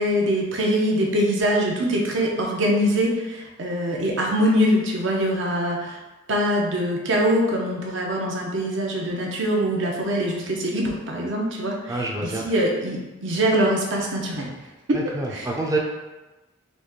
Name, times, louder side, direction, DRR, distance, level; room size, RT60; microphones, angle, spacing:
voice 1, 0.0-6.0 6.3-14.5 14.9-15.0 15.3-15.5, equal, 60° right, -1 dB, 0.9 m, -23 dB
voice 2, 11.9-12.4 14.9-15.8, right 2 dB, 15° right, 0 dB, 0.5 m, -27 dB
4.1 x 3.1 x 3.7 m, 1.1 s
head